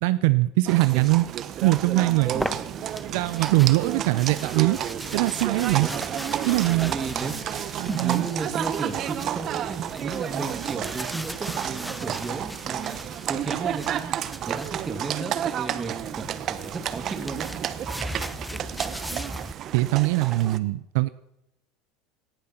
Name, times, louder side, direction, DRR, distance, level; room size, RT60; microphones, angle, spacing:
voice 1, 0.0-1.3 1.6-2.4 3.0-4.8 5.1-5.9 6.4-6.9 7.8-8.3 19.7-21.1, right 20 dB, 75° right, 14 dB, 0.6 m, -22 dB
Livestock farm animals working animals, 0.6-20.6, right 10 dB, 45° right, 1.0 m, -31 dB
sound 1, 2.2-15.0 16.0-19.5, equal, ahead, 0.7 m, -39 dB
voice 2, 5.8-6.2 6.8-7.4 7.9-13.0 13.3-14.1 14.5-17.5, right 4 dB, 20° right, 7 dB, 2.4 m, -34 dB
18.5 x 11.5 x 5.8 m, 0.82 s
supercardioid pair, 110°, 0 cm